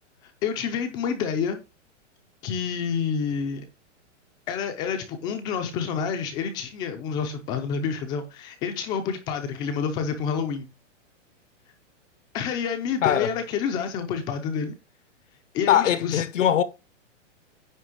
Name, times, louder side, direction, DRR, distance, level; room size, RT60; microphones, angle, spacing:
voice 1, 0.2-1.6 2.4-3.7 4.5-10.7 12.3-14.7 15.5-16.2, left 6 dB, 10° left, 0.4 m, -28 dB
voice 2, 13.0-13.3 15.7-16.6, left 10 dB, 85° left, 1.1 m, -21 dB
9.6 x 3.3 x 6.2 m
hypercardioid pair, 160°, 37 cm